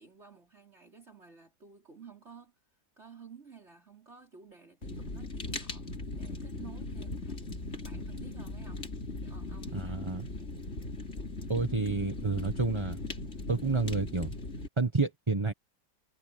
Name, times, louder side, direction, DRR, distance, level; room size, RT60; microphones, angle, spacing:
voice 1, 0.0-2.6 3.0-8.9 9.2-10.1, right 6 dB, 35° right, 4.6 m, -53 dB
Fire, 4.8-14.7, left 2 dB, 40° left, 3.5 m, -39 dB
voice 2, 9.7-10.2 11.5-13.0 13.5-14.3 14.8-15.5, right 3 dB, 15° right, 1.4 m, -29 dB
omnidirectional pair, 1.9 m